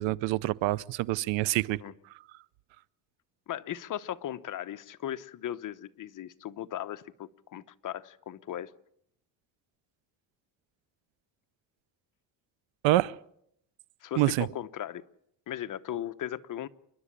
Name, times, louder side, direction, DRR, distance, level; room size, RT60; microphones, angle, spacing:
voice 1, 0.0-1.8 12.8-13.1 14.2-14.5, right 17 dB, 90° right, 0.8 m, -26 dB
voice 2, 3.5-8.7 14.0-15.0 15.5-16.7, left 11 dB, 45° left, 0.9 m, -37 dB
29.0 x 11.5 x 9.9 m
cardioid pair, 135°, 44 cm